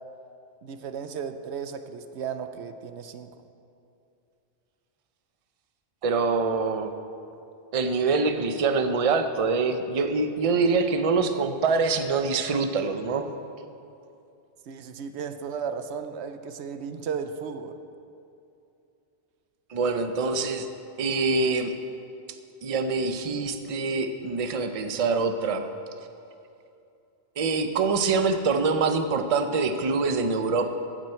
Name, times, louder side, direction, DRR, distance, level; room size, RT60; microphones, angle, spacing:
voice 1, 0.6-3.3 14.7-17.8, right 6 dB, 80° right, 9 dB, 0.9 m, -35 dB
voice 2, 6.0-6.9 7.7-13.3 19.7-20.7 21.0-21.7 22.6-25.7 27.4-30.8, right 4 dB, 40° right, 8 dB, 0.6 m, -25 dB
15.5 x 9.1 x 4.4 m, 2.7 s
omnidirectional pair, 1.1 m